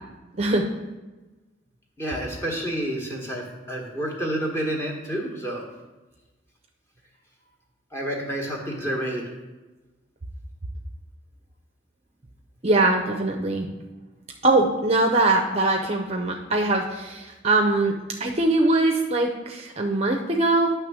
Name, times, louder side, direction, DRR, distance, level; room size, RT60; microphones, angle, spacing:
voice 1, 0.4-0.7 12.6-13.7 14.4-20.7, right 2 dB, 30° right, 2 dB, 0.5 m, -22 dB
voice 2, 2.0-5.7 7.9-9.3, right 1 dB, 15° left, -1 dB, 1.3 m, -29 dB
9.9 x 3.4 x 6.2 m, 1.2 s
head